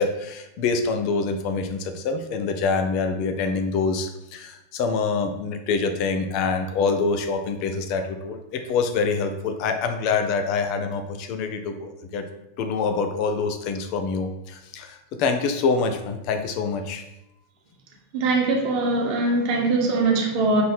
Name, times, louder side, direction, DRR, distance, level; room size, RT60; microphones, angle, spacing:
voice 1, 0.0-12.3 12.6-17.0, left 4 dB, 45° left, 6 dB, 0.7 m, -25 dB
voice 2, 18.1-20.6, right 3 dB, 45° right, 1 dB, 1.4 m, -22 dB
6.6 x 3.5 x 4.4 m, 0.89 s
figure-of-eight pair, 90°, 0 cm